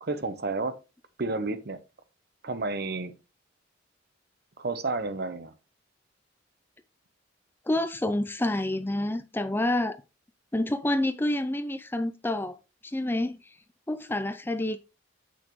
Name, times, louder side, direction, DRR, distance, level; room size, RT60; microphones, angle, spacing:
voice 1, 0.0-0.8 1.2-1.8 2.4-3.1 4.6-5.5, right 3 dB, 55° right, 0.8 m, -31 dB
voice 2, 7.7-10.0 10.5-12.6 12.8-13.4 13.9-14.8, left 1 dB, 10° left, 0.4 m, -28 dB
8.2 x 6.1 x 3.0 m
head